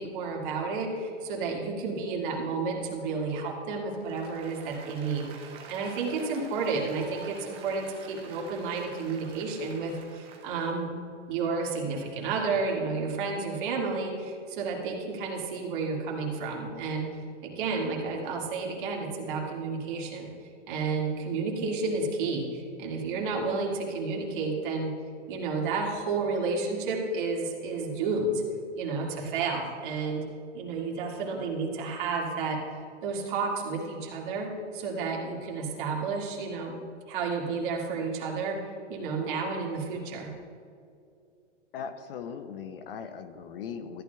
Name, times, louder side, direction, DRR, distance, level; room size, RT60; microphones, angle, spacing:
voice 1, 0.0-10.9 11.3-17.1 17.4-24.9 25.3-28.4 28.7-30.2 30.5-32.6 33.0-36.7 37.1-40.3, right 4 dB, 45° right, -1 dB, 2.0 m, -31 dB
Applause, 3.9-10.7, right 6 dB, 15° right, 0.7 m, -47 dB
voice 2, 41.7-44.0, left 7 dB, 50° left, 10 dB, 0.6 m, -39 dB
14.0 x 9.8 x 2.3 m, 2.5 s
hypercardioid pair, 155°, 37 cm